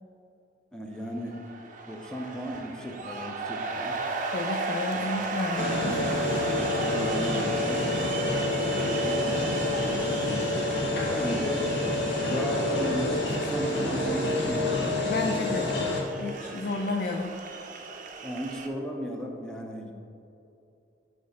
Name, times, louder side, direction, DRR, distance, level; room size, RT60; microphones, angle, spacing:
voice 1, 0.7-1.4 1.9-4.0 4.9-5.3 6.5-11.7 12.2-14.9 18.2-19.9, equal, 5° left, 1 dB, 0.6 m, -36 dB
sound 1, 1.1-18.7, right 3 dB, 45° right, 0.6 m, -36 dB
voice 2, 4.3-6.2 15.0-15.7 16.2-17.4, left 2 dB, 55° left, 3 dB, 0.4 m, -31 dB
sound 2, 5.6-16.0, left 2 dB, 85° left, 1.3 m, -28 dB
9.6 x 3.2 x 4.1 m, 2.7 s
head